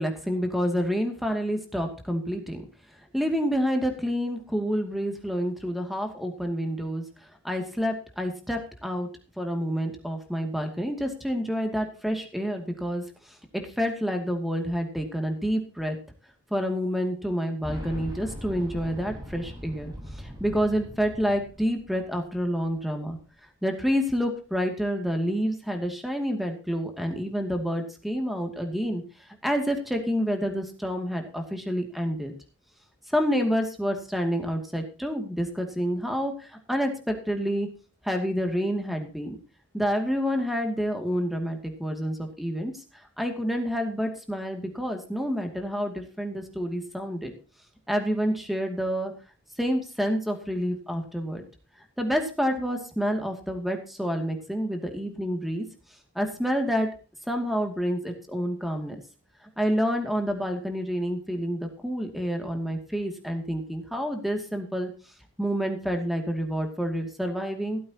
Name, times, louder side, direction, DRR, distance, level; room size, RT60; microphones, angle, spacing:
voice 1, 0.0-2.6 3.1-9.1 9.4-16.0 16.5-23.2 23.6-32.3 33.1-37.7 38.0-39.4 39.7-47.3 47.9-49.1 49.6-51.4 51.8-55.6 56.1-56.9 57.3-59.0 59.4-64.9 65.4-67.8, equal, ahead, 4 dB, 2.5 m, -28 dB
Boom, 17.6-22.4 22.6-22.7 23.8-23.9, equal, 20° right, 7.5 m, -40 dB
17.0 x 14.0 x 2.9 m, 0.34 s
head